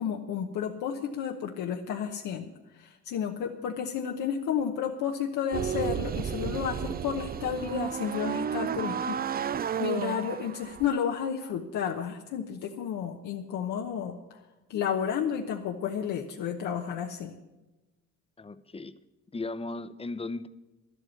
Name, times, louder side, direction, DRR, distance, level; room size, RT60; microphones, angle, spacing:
voice 1, 0.0-2.4 2.7-14.4 14.7-17.3, left 8 dB, 85° left, 2 dB, 1.0 m, -32 dB
sound 1, 5.5-10.9, right 8 dB, 30° right, 0.4 m, -32 dB
voice 2, 18.4-18.9 19.3-20.5, left 2 dB, 20° left, 13 dB, 0.8 m, -36 dB
11.5 x 8.4 x 9.5 m, 1.1 s
cardioid pair, 90°, 30 cm